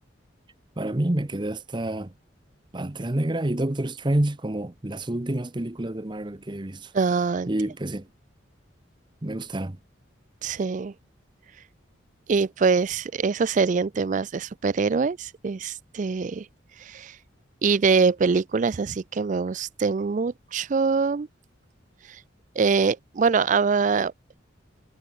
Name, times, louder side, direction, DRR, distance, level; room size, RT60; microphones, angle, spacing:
voice 1, 0.8-2.1 2.7-6.9 7.5-8.1 9.2-9.8, right 1 dB, 25° right, 0.8 m, -28 dB
voice 2, 6.9-7.5 10.4-10.9 12.3-16.5 16.8-17.2 17.6-21.3 22.1-22.2 22.6-24.1, right 5 dB, 40° right, 0.4 m, -24 dB
head